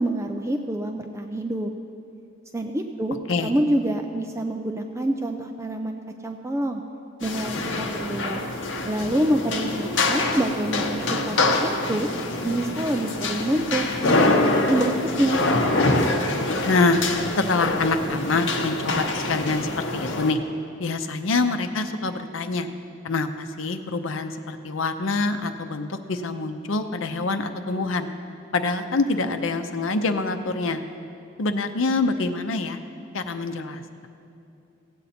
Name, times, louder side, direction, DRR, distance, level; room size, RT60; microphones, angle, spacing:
voice 1, 0.0-1.7 2.5-3.2 3.4-6.8 7.2-8.4 8.9-12.1 12.4-15.4, right 1 dB, 15° right, 5 dB, 0.4 m, -26 dB
sound 1, 7.2-20.3, left 2 dB, 65° left, 0.9 m, -25 dB
voice 2, 16.6-17.0 17.4-20.4 20.8-22.7 23.0-28.1 28.5-30.8 31.4-32.8 33.1-34.1, left 3 dB, 85° left, 8 dB, 0.7 m, -25 dB
16.5 x 8.1 x 4.3 m, 2.7 s
head